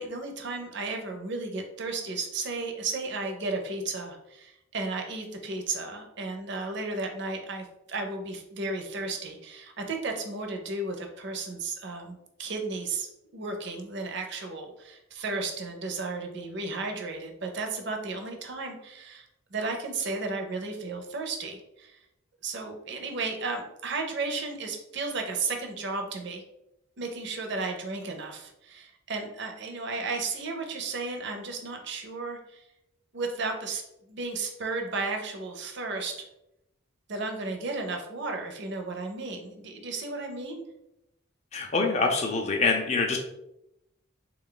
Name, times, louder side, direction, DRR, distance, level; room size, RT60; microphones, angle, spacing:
voice 1, 0.0-22.0 22.4-26.4 27.0-32.6 33.1-33.8 34.1-36.3 37.1-40.6, right 3 dB, 55° right, 4 dB, 0.6 m, -34 dB
voice 2, 41.5-43.2, left 4 dB, 30° left, 2 dB, 0.4 m, -25 dB
3.4 x 2.3 x 3.8 m, 0.84 s
head